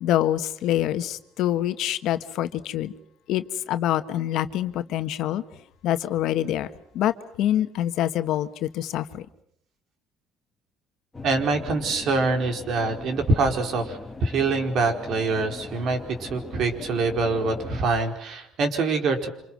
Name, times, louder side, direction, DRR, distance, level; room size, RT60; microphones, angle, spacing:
voice 1, 0.0-2.9 3.3-5.4 5.8-6.7 6.9-9.2, left 12 dB, 70° left, 1.5 m, -25 dB
sound 1, 11.1-17.9, left 3 dB, 15° left, 2.5 m, -40 dB
voice 2, 11.2-19.3, right 3 dB, 60° right, 4.8 m, -25 dB
28.0 x 27.0 x 6.3 m
cardioid pair, 120°, 0 cm